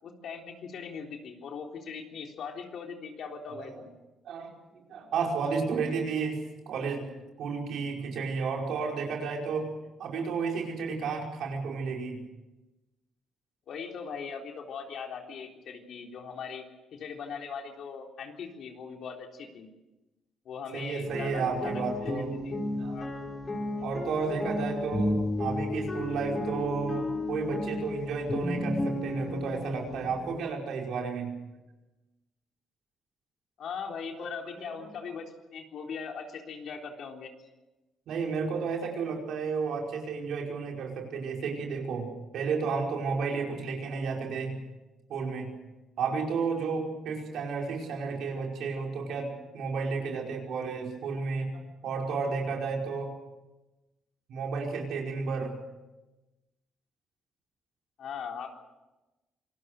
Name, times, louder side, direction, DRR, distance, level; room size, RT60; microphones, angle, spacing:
voice 1, 0.0-4.0 13.7-16.6 16.9-19.7 20.5-22.6 22.9-23.2 23.7-24.1 33.6-35.3 35.5-37.3 58.0-58.5, left 6 dB, 70° left, 2 dB, 3.7 m, -40 dB
voice 2, 4.9-7.1 7.4-12.2 20.7-22.3 22.8-23.0 23.8-31.3 34.2-34.9 38.1-44.6 45.1-45.5 46.0-53.1 54.3-55.6, right 5 dB, 75° right, 1 dB, 5.1 m, -32 dB
sound 1, 21.0-30.4, left 2 dB, 30° left, 5.3 m, -33 dB
26.5 x 19.5 x 6.6 m, 1.1 s
cardioid pair, 90°, 0 cm